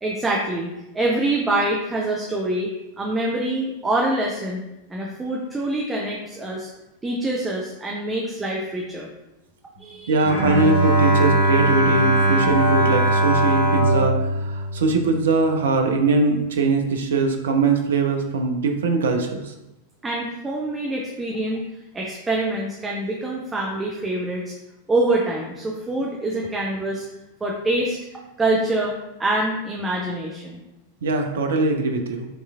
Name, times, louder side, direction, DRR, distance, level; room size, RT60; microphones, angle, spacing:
voice 1, 0.0-0.7 0.9-2.7 3.0-4.6 4.9-6.7 7.0-9.1 9.8-10.1 20.0-21.7 21.9-24.5 24.9-27.1 27.4-28.0 28.4-30.6, right 2 dB, 15° right, -2 dB, 0.6 m, -25 dB
voice 2, 10.1-19.5 31.0-32.3, right 3 dB, 65° right, 4 dB, 0.6 m, -21 dB
Bowed string instrument, 10.2-15.6, right 1 dB, 65° left, 1.3 m, -20 dB
5.4 x 3.0 x 2.4 m, 0.95 s
figure-of-eight pair, 90°, 0 cm